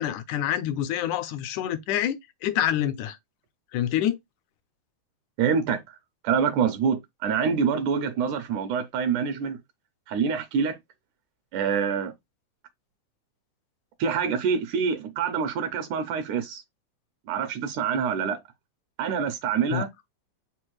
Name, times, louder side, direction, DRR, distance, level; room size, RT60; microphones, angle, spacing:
voice 1, 0.0-3.2 3.7-4.2 19.7-19.8, left 11 dB, 80° left, 1.9 m, -27 dB
voice 2, 5.4-6.0 6.2-9.6 10.1-10.8 11.5-12.1 14.0-16.6 17.3-18.4 19.0-19.9, right 6 dB, 75° right, 2.0 m, -26 dB
5.2 x 2.0 x 4.5 m
omnidirectional pair, 3.8 m